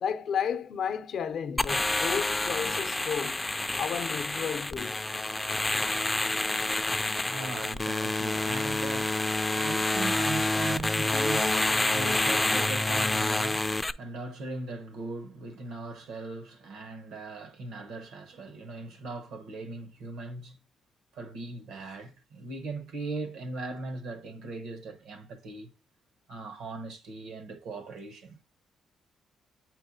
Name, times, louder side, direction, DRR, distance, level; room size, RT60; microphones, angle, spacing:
voice 1, 0.0-3.4 3.8-5.0, left 7 dB, 65° left, 0.5 m, -32 dB
sound 1, 1.6-13.9, left 2 dB, 15° left, 0.3 m, -28 dB
voice 2, 7.0-20.6 21.1-25.7 26.3-28.4, right 3 dB, 85° right, 1.0 m, -39 dB
8.7 x 4.4 x 2.7 m
cardioid pair, 90°, 0 cm